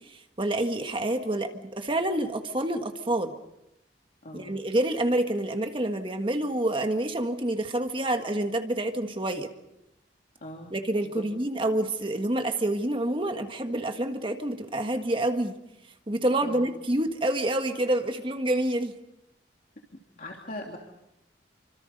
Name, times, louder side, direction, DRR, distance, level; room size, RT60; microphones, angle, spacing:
voice 1, 0.0-3.4 4.3-9.5 10.7-15.6 16.1-18.9, right 1 dB, 30° right, 6 dB, 1.6 m, -28 dB
voice 2, 4.2-4.6 10.4-10.7 11.1-11.2 16.4-16.6 20.2-20.8, left 1 dB, 50° left, 0 dB, 2.9 m, -40 dB
28.5 x 25.5 x 5.4 m, 0.87 s
head